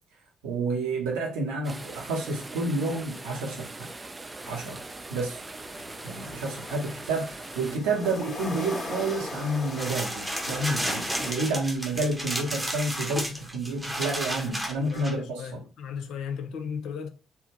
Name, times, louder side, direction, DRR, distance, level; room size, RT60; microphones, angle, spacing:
voice 1, 0.4-3.9 4.5-4.8 5.1-5.4 6.0-15.6, right 2 dB, 70° right, 0.7 m, -30 dB
sound 1, 1.6-7.8, right 2 dB, 25° right, 0.4 m, -41 dB
sound 2, 4.4-11.3, left 2 dB, 30° left, 1.3 m, -40 dB
sound 3, 9.7-15.1, equal, 5° right, 0.9 m, -32 dB
voice 2, 14.9-17.1, left 7 dB, 60° left, 0.5 m, -36 dB
3.4 x 2.2 x 3.1 m
figure-of-eight pair, 45°, 0 cm